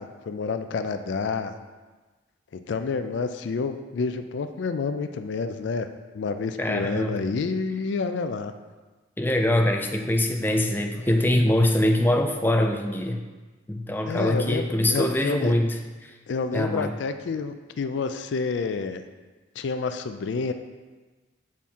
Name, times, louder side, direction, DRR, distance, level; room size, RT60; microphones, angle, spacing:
voice 1, 0.0-1.5 2.5-5.9 6.1-8.5 14.1-15.5 16.3-19.0 19.6-20.5, left 4 dB, 75° left, 9 dB, 0.4 m, -29 dB
voice 2, 6.6-7.2 9.2-13.2 13.7-16.2 16.5-17.0, left 1 dB, 10° left, 3 dB, 0.4 m, -23 dB
7.3 x 3.6 x 4.3 m, 1.3 s
head